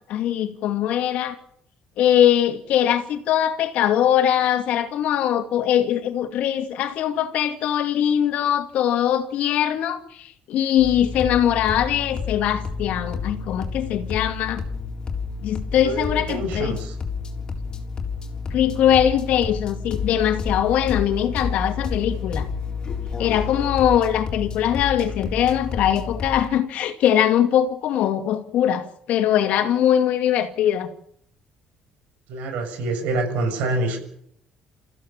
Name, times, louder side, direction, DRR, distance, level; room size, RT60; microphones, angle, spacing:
voice 1, 0.0-1.3 2.0-14.6 15.4-16.8 18.5-22.5 23.2-30.9, left 10 dB, 70° left, 2.4 m, -21 dB
sound 1, 10.8-26.5, left 5 dB, 35° left, 3.9 m, -30 dB
voice 2, 15.8-17.0 32.3-34.0, right 2 dB, 85° right, 7.1 m, -26 dB
28.0 x 15.0 x 7.3 m
cardioid pair, 130°, 2 cm